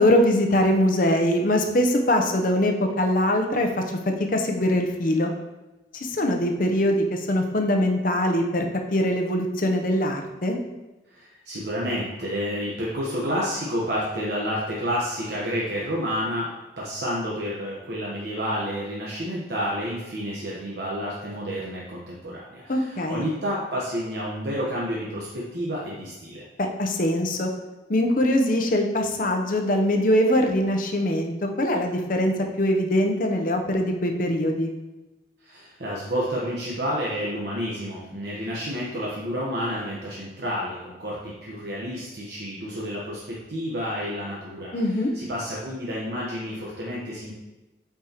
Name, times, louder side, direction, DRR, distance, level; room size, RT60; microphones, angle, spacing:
voice 1, 0.0-3.7 4.3-5.3 5.9-8.7 8.9-10.6 22.7-23.3 26.8-27.5 27.9-34.7 44.7-45.1, left 1 dB, 50° left, 3 dB, 0.7 m, -22 dB
voice 2, 11.1-16.5 16.8-26.4 35.4-47.3, equal, 65° right, -5 dB, 1.1 m, -30 dB
8.4 x 4.6 x 2.9 m, 1.1 s
head